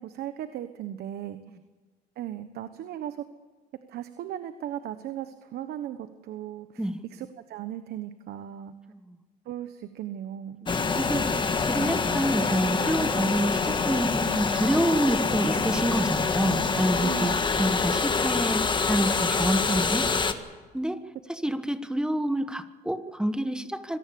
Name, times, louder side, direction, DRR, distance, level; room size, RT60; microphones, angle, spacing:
voice 1, 0.0-1.6 2.2-3.2 3.9-8.7 9.4-10.7 17.0-17.3, right 11 dB, 70° right, 10 dB, 1.2 m, -37 dB
voice 2, 10.6-20.1 20.7-21.0 21.3-24.0, right 1 dB, 5° right, 10 dB, 1.2 m, -28 dB
sound 1, 10.7-20.3, left 4 dB, 30° left, 1.6 m, -26 dB
25.5 x 18.0 x 7.0 m, 1.3 s
cardioid pair, 110°, 17 cm